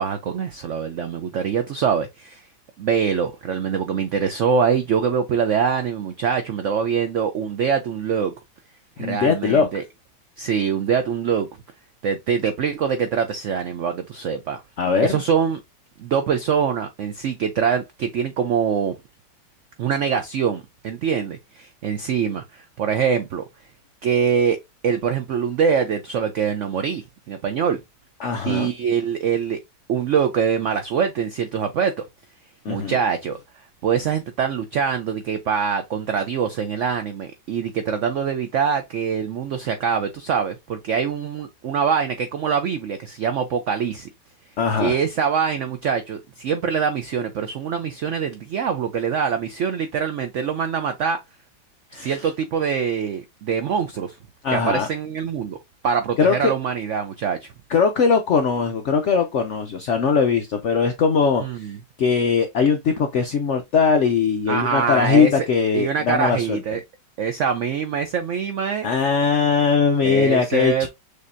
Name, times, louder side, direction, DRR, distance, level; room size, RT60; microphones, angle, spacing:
voice 1, 0.0-2.4 2.8-8.3 9.0-9.8 10.4-11.5 12.0-14.6 15.0-15.6 16.0-18.9 19.8-23.4 24.0-24.6 24.8-27.8 28.5-29.6 29.9-32.1 32.7-44.1 44.8-51.2 51.9-54.2 54.5-55.6 55.8-57.5 61.4-61.8 64.5-65.5 65.7-66.8 67.2-68.9 70.0-70.9, right 7 dB, 85° right, 0.6 m, -24 dB
voice 2, 9.0-9.7 14.8-15.2 28.2-28.7 32.6-33.0 44.6-45.0 51.9-52.2 54.4-54.9 56.2-56.5 57.7-61.4 62.0-66.6 68.8-70.9, left 5 dB, 80° left, 0.6 m, -20 dB
6.6 x 2.8 x 2.5 m
omnidirectional pair, 1.9 m